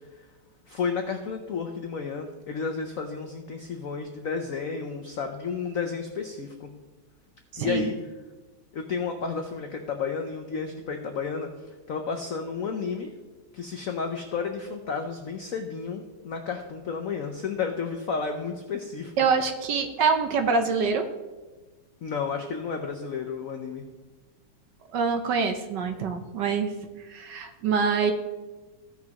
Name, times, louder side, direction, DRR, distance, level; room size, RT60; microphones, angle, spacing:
voice 1, 0.7-6.7 7.6-7.9 8.7-11.5 11.9-13.1 13.5-19.1 22.0-23.9, left 5 dB, 70° left, 4 dB, 0.7 m, -32 dB
voice 2, 7.5-7.9 19.2-21.1 24.9-26.7 27.1-28.1, right 5 dB, 65° right, 6 dB, 1.2 m, -25 dB
15.5 x 6.2 x 2.9 m, 1.2 s
omnidirectional pair, 2.3 m